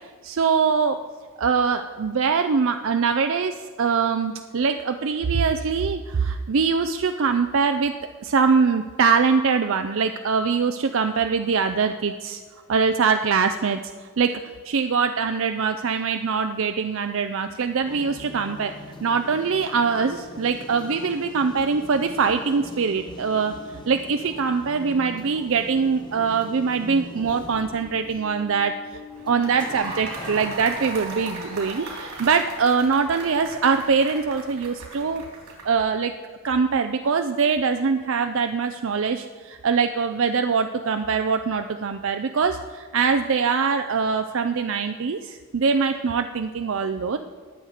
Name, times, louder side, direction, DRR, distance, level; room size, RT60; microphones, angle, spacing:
voice 1, 0.2-1.0 1.4-7.9 8.2-12.4 12.7-13.8 14.2-14.3 14.6-18.7 19.0-23.5 23.9-28.7 29.2-35.2 35.6-36.1 36.4-47.2, right 5 dB, 65° right, 7 dB, 0.5 m, -23 dB
sound 1, 17.8-31.3, left 2 dB, 20° left, 1.3 m, -41 dB
sound 2, 29.1-35.8, right 2 dB, 90° right, 3.7 m, -38 dB
20.0 x 7.9 x 5.0 m, 1.5 s
head